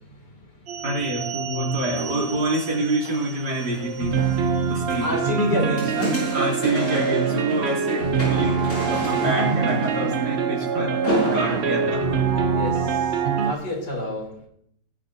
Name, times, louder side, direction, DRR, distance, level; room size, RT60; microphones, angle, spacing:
sound 1, 0.7-13.5, right 6 dB, 45° right, 0.9 m, -25 dB
voice 1, 0.8-4.2 4.7-5.1 5.5-5.6 6.3-8.6 8.9-10.9 11.2-12.2, right 1 dB, 65° right, -3 dB, 4.4 m, -26 dB
sound 2, 1.8-13.1 13.6-13.7, left 1 dB, 90° left, 6.4 m, -32 dB
voice 2, 4.6-6.3 10.7-11.3 12.5-13.2 13.4-14.4, left 2 dB, 65° left, 0 dB, 4.0 m, -29 dB
20.5 x 11.0 x 2.8 m, 0.69 s
omnidirectional pair, 1.9 m